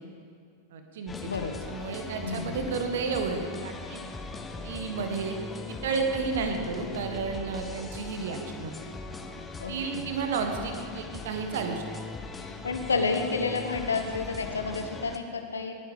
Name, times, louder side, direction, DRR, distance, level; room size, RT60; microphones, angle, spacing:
voice 1, 0.7-1.3 1.7-4.0 4.6-5.4 5.7-8.7 9.7-11.9, right 4 dB, 60° right, 5 dB, 1.7 m, -32 dB
sound 1, 1.1-15.2, left 3 dB, 15° left, 1.0 m, -40 dB
voice 2, 1.2-1.7 2.2-2.6 9.6-10.1 12.4-15.7, left 4 dB, 75° left, 6 dB, 1.3 m, -30 dB
19.5 x 10.0 x 5.1 m, 2.3 s
figure-of-eight pair, 90°, 0 cm